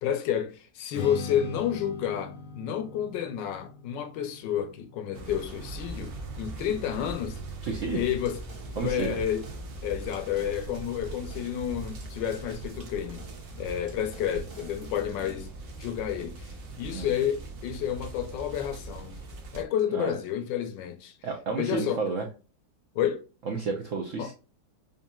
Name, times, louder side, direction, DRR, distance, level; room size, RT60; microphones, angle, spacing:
voice 1, 0.0-7.4 7.9-8.4 8.7-9.5 9.8-13.2 13.6-15.5 15.8-16.5 16.8-19.2 19.5-21.2 21.6-22.0 22.9-23.2 24.2-24.3, left 9 dB, 75° left, 1.2 m, -30 dB
Strum, 0.9-7.2, left 5 dB, 60° left, 0.9 m, -42 dB
sound 1, 5.1-19.6, right 3 dB, 55° right, 1.1 m, -41 dB
voice 2, 7.6-8.0 8.8-9.2 16.9-17.1 19.9-20.1 21.2-22.2 23.5-24.3, right 4 dB, 85° right, 0.6 m, -31 dB
sound 2, 8.0-15.5, right 3 dB, 40° right, 1.6 m, -47 dB
5.1 x 2.7 x 2.2 m
omnidirectional pair, 2.1 m